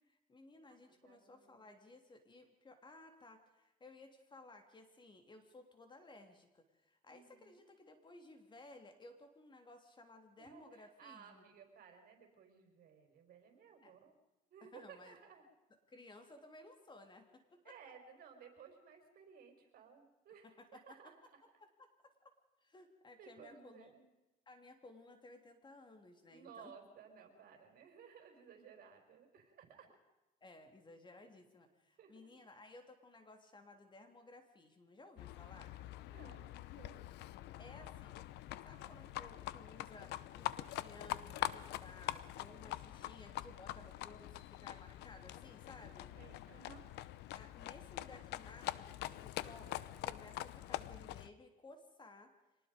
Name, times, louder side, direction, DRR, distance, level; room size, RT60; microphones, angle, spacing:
voice 1, 0.0-11.4 13.8-13.9 14.6-15.2 15.9-17.7 20.4-21.0 21.8-22.3 22.6-23.9 24.5-26.7 30.4-35.7 37.6-38.2 38.6-46.1 47.3-52.3, left 2 dB, 25° left, 6 dB, 3.2 m, -58 dB
voice 2, 0.7-1.6 7.1-7.6 10.4-14.1 14.5-15.4 17.6-21.4 23.2-24.1 26.3-30.0 32.0-32.2 36.0-37.3 42.5-42.9 46.1-46.8, right 7 dB, 60° right, 4 dB, 5.0 m, -58 dB
Livestock farm animals working animals, 35.2-51.3, left 15 dB, 85° left, 0.8 m, -45 dB
25.0 x 19.5 x 5.2 m, 1.0 s
cardioid pair, 110°, 17 cm